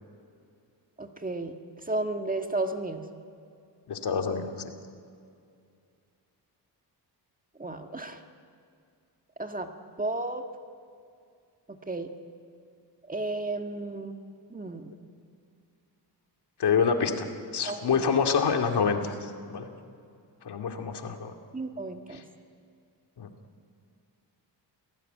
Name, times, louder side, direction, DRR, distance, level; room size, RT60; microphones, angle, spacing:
voice 1, 1.0-1.5 1.9-3.0 7.6-8.2 9.4-9.7 10.0-10.5 11.7-12.1 13.1-14.2 14.5-14.9 17.6-18.0 21.5-22.2, right 2 dB, 20° right, 6 dB, 1.6 m, -33 dB
voice 2, 3.9-4.7 16.6-19.7 20.4-21.3 22.1-22.2 23.2-23.3, left 6 dB, 65° left, 4 dB, 2.4 m, -27 dB
29.0 x 18.5 x 9.3 m, 2.4 s
cardioid pair, 110°, 42 cm